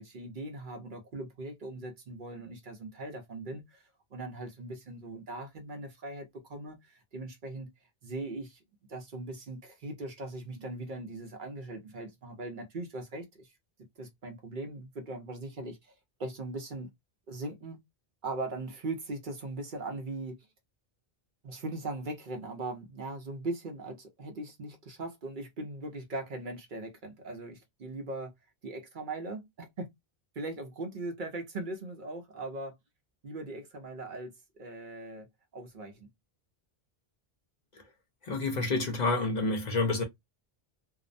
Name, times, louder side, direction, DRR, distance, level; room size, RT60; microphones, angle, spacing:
voice 1, 0.0-7.7 8.0-8.6 8.9-13.5 14.0-15.9 16.2-16.9 17.3-17.8 18.2-20.5 21.4-28.3 28.6-29.9 30.3-32.8 33.2-35.3 35.5-36.1, right 2 dB, 55° right, 0.8 m, -40 dB
voice 2, 38.2-40.0, left 3 dB, 50° left, 0.7 m, -29 dB
2.7 x 2.0 x 2.5 m
omnidirectional pair, 1.0 m